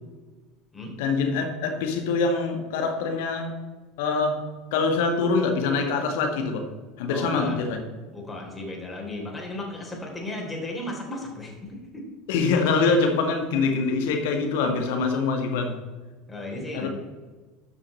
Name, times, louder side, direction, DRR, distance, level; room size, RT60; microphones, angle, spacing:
voice 1, 1.0-3.5 4.0-4.4 4.7-6.7 7.0-7.8 12.3-15.8 16.7-16.9, left 4 dB, 65° left, 5 dB, 1.6 m, -24 dB
voice 2, 7.1-7.6 8.1-12.1 16.3-16.9, left 2 dB, 15° left, 0 dB, 3.4 m, -35 dB
12.5 x 6.2 x 4.3 m, 1.3 s
hypercardioid pair, 75°, 0 cm